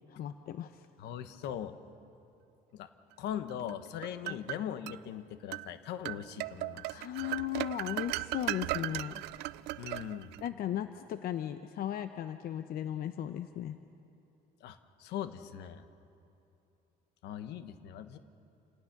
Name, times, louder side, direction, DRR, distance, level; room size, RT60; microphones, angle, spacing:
voice 1, 0.1-0.8 4.3-4.4 6.9-9.2 10.4-13.8, left 11 dB, 60° left, 9 dB, 0.7 m, -36 dB
voice 2, 1.0-1.8 2.7-2.9 3.2-7.0 9.8-10.3 14.6-15.8 17.2-18.2, left 10 dB, 80° left, 10 dB, 1.2 m, -40 dB
sound 1, 3.7-5.0 5.5-5.7 6.1-10.5, right 18 dB, 85° right, 0.4 m, -37 dB
28.0 x 18.0 x 6.0 m, 2.7 s
cardioid pair, 110°, 17 cm